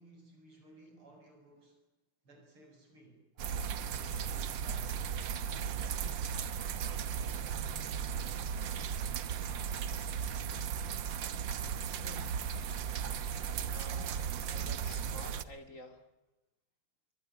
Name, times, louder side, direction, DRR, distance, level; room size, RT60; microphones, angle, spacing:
voice 1, 0.0-1.8 2.2-6.2 6.7-8.1, right 2 dB, 85° right, 4 dB, 7.9 m, -58 dB
sound 1, 3.4-15.4, right 7 dB, 65° right, 1.7 m, -36 dB
voice 2, 12.0-12.5 13.7-16.1, left 1 dB, 35° left, 7 dB, 3.1 m, -51 dB
24.0 x 19.0 x 9.7 m, 0.98 s
omnidirectional pair, 2.3 m